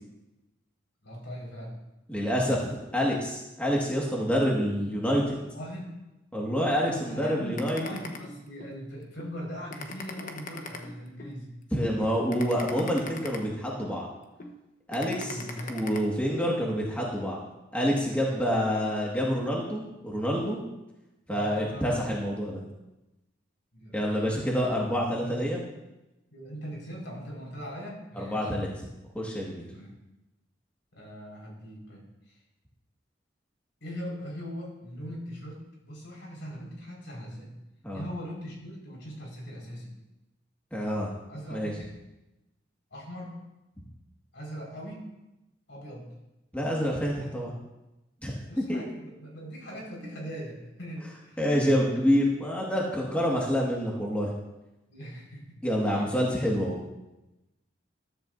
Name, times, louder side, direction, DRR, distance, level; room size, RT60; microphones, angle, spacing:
voice 1, 1.0-1.7 5.5-5.9 6.8-11.5 15.1-16.1 18.3-18.5 21.3-22.0 23.7-24.3 25.3-25.5 26.3-28.5 29.7-29.9 30.9-32.1 33.8-37.5 37.9-40.0 41.3-41.9 42.9-43.4 44.3-45.1 45.7-46.1 48.5-51.4 54.9-55.6 55.9-56.6, equal, 75° left, -3 dB, 5.0 m, -40 dB
voice 2, 2.1-5.4 6.3-7.8 11.7-14.1 14.9-15.4 15.7-17.4 17.7-20.6 21.3-22.6 23.9-25.6 28.2-28.7 29.2-29.7 37.8-38.0 40.7-41.1 41.5-41.7 46.5-47.5 48.2-48.8 51.4-54.3 55.6-56.8, equal, 5° left, -3 dB, 1.8 m, -27 dB
sound 1, 7.6-8.7 9.2-9.3 9.7-11.3 11.8-11.9 12.3-14.0 14.4-14.5 14.9-16.0, left 4 dB, 45° left, 1.1 m, -40 dB
14.0 x 13.5 x 2.7 m, 0.96 s
head